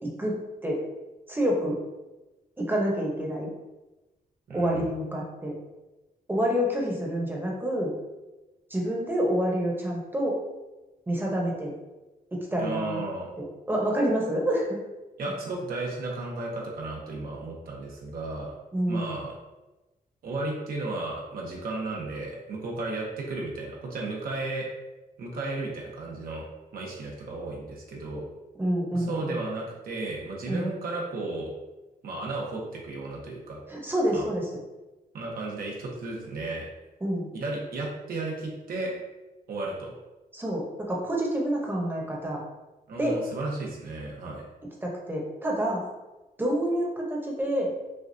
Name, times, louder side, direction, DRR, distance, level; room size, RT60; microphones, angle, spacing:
voice 1, 0.0-0.8 1.3-1.8 2.6-3.5 4.5-5.6 6.3-7.9 8.7-10.4 11.1-11.7 12.3-13.0 13.4-14.8 18.7-19.2 28.6-29.4 30.5-30.7 33.7-34.5 37.0-37.3 40.3-42.4 43.0-43.2 44.8-45.8 46.4-47.7, equal, 15° right, -2 dB, 0.9 m, -28 dB
voice 2, 4.5-4.9 12.6-13.3 15.2-18.6 18.9-19.3 20.2-24.7 25.2-26.4 26.7-28.3 28.9-31.5 32.0-33.6 34.1-34.3 35.1-36.7 37.3-38.9 39.5-40.0 42.9-44.4, right 2 dB, 80° right, -2 dB, 1.1 m, -34 dB
6.0 x 2.5 x 2.7 m, 1.1 s
wide cardioid pair, 135°, 15 cm